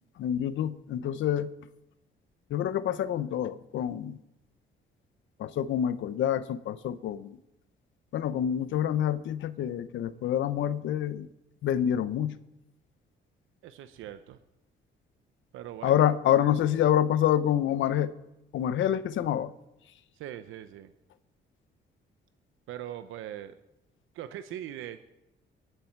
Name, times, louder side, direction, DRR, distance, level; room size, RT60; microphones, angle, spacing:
voice 1, 0.2-1.5 2.5-4.2 5.4-7.4 8.1-11.3 11.6-12.3 15.8-18.1 18.5-19.5, left 10 dB, 75° left, 14 dB, 0.8 m, -27 dB
voice 2, 13.6-14.4 15.5-16.0 20.1-20.9 22.7-23.6 24.1-25.0, right 11 dB, 90° right, 10 dB, 0.9 m, -41 dB
22.0 x 11.5 x 4.6 m, 0.89 s
cardioid pair, 90°, 20 cm